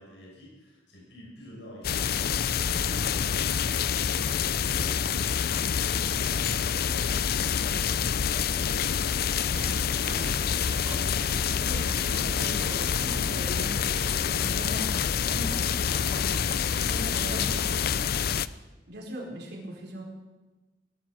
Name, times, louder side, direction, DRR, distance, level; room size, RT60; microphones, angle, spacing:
voice 1, 0.0-5.3 5.8-10.6 12.2-18.2, left 1 dB, 75° left, -3 dB, 6.8 m, -47 dB
sound 1, 1.8-18.5, left 7 dB, 60° left, 0.5 m, -27 dB
sound 2, 9.0-18.2, right 4 dB, 30° right, 1.0 m, -47 dB
voice 2, 10.0-10.4 11.2-13.7 14.3-14.9 15.3-15.5 16.8-17.6 18.9-20.0, right 1 dB, 65° right, -2 dB, 4.6 m, -39 dB
18.5 x 12.0 x 6.3 m, 1.2 s
head